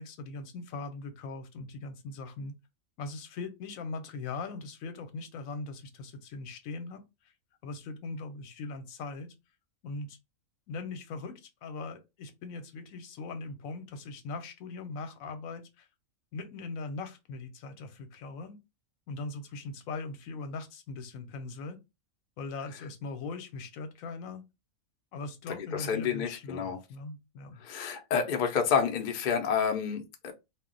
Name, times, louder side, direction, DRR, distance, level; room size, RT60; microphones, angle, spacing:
voice 1, 0.0-2.5 3.0-7.3 7.6-9.3 9.8-10.2 10.7-15.9 16.3-18.6 19.1-21.8 22.4-24.4 25.1-27.6, left 3 dB, 85° left, 1.0 m, -40 dB
voice 2, 25.5-26.8 27.6-30.3, left 6 dB, 55° left, 0.5 m, -29 dB
2.3 x 2.1 x 3.7 m
omnidirectional pair, 1.4 m